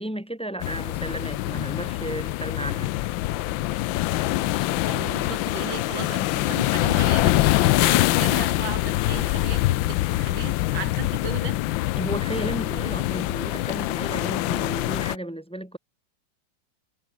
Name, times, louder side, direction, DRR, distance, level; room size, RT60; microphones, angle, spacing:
voice 1, 0.0-2.9 12.0-15.8, right 1 dB, 5° left, 2.1 m, -33 dB
sound 1, 0.6-15.2, left 17 dB, 80° left, 1.3 m, -24 dB
voice 2, 4.9-7.4 7.8-11.6, right 8 dB, 85° right, 2.4 m, -36 dB
omnidirectional pair, 2.1 m